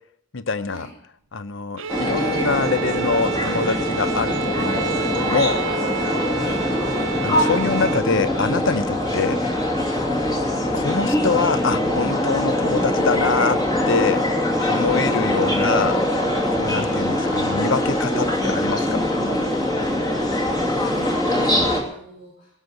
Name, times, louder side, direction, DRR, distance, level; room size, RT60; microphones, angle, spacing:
voice 1, 0.3-0.9 1.3-5.6 7.2-9.4 10.7-13.6 13.9-14.2 14.7-16.0 16.6-19.0, left 4 dB, 60° left, 13 dB, 0.7 m, -24 dB
Bowed string instrument, 1.8-8.1, right 7 dB, 65° right, 0.6 m, -29 dB
sound 1, 1.9-21.8, left 1 dB, 20° left, 2.3 m, -22 dB
voice 2, 20.6-22.5, left 1 dB, 35° left, -5 dB, 3.6 m, -40 dB
18.0 x 6.4 x 9.2 m, 0.72 s
head